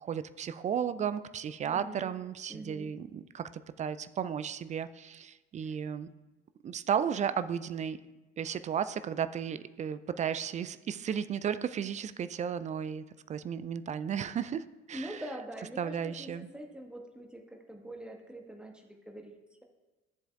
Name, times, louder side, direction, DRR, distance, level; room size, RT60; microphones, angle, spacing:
voice 1, 0.0-3.5 3.8-6.1 6.6-8.0 8.4-15.2 15.8-16.5, right 8 dB, 20° right, 13 dB, 0.3 m, -34 dB
voice 2, 1.6-2.1 2.5-2.9 5.6-5.8 14.9-19.6, right 1 dB, 5° right, 2 dB, 1.3 m, -44 dB
14.0 x 7.6 x 2.3 m, 1.1 s
figure-of-eight pair, 50°, 35 cm